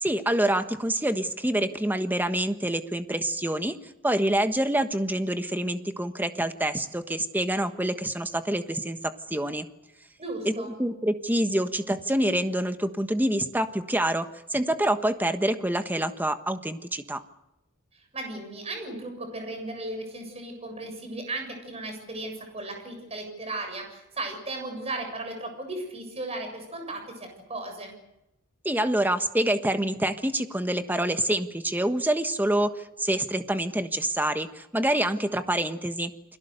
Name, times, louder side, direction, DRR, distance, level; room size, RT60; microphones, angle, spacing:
voice 1, 0.0-3.8 4.0-9.7 10.4-17.2 28.6-36.1, right 1 dB, 10° right, 8 dB, 1.3 m, -26 dB
voice 2, 10.2-10.8 17.9-27.9, right 2 dB, 30° right, 5 dB, 7.3 m, -36 dB
29.5 x 22.0 x 6.7 m, 0.92 s
head